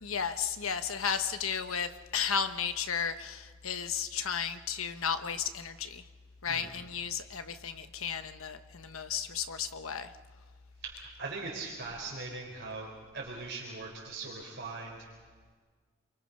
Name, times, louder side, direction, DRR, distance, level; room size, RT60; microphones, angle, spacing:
voice 1, 0.0-6.0 6.4-10.1, left 7 dB, 90° left, 9 dB, 1.2 m, -34 dB
voice 2, 10.8-15.0, right 3 dB, 55° right, -3 dB, 4.1 m, -41 dB
29.5 x 23.0 x 5.5 m, 1.5 s
head